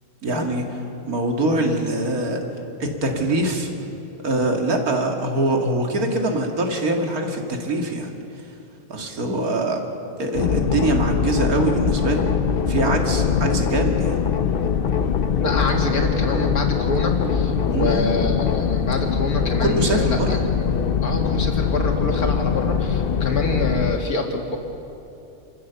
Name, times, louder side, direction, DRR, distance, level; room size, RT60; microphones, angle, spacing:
voice 1, 0.2-0.6 1.1-2.4 2.8-3.7 4.2-8.1 8.9-9.8 10.2-12.3 12.7-14.2 17.7-18.2 19.6-20.4, right 1 dB, 70° right, 2 dB, 2.6 m, -23 dB
sound 1, 10.3-24.0, left 7 dB, 55° left, 0.7 m, -22 dB
voice 2, 15.3-20.7 21.0-24.6, left 2 dB, 75° left, 2 dB, 2.7 m, -26 dB
28.0 x 15.5 x 7.0 m, 2.9 s
omnidirectional pair, 1.6 m